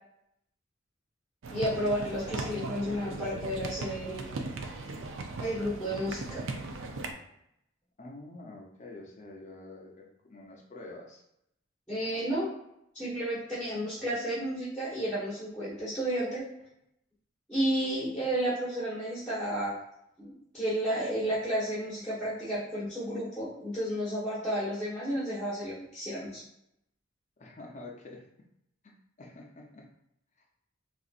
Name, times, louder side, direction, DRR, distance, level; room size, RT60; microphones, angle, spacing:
sound 1, 1.4-7.1, right 3 dB, 80° right, 0.4 m, -38 dB
voice 1, 1.5-4.3 5.4-6.4 11.9-12.5 12.9-16.4 17.5-19.7 20.2-26.4, equal, 5° left, -12 dB, 1.2 m, -32 dB
voice 2, 8.0-11.2 27.4-28.2 28.8-29.9, left 2 dB, 40° left, 0 dB, 0.6 m, -47 dB
3.9 x 2.5 x 2.5 m, 0.79 s
head